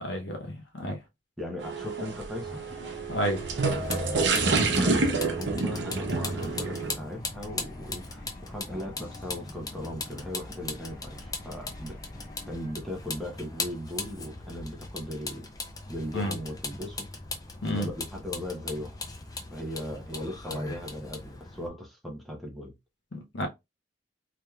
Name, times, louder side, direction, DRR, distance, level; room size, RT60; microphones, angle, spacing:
voice 1, 0.0-1.0 3.1-3.4 16.1-16.3 17.6-17.9 23.3-23.5, equal, 70° left, 0.8 m, -30 dB
voice 2, 1.4-2.6 4.1-12.0 12.5-15.5 15.9-17.1 17.6-19.0 19.5-22.7, left 1 dB, ahead, 0.8 m, -38 dB
sound 1, 1.6-6.9, right 4 dB, 65° right, 0.8 m, -28 dB
sound 2, 2.3-12.7, left 1 dB, 50° left, 1.3 m, -42 dB
Vehicle, 3.7-21.7, left 3 dB, 20° left, 0.5 m, -39 dB
3.4 x 3.0 x 2.3 m
head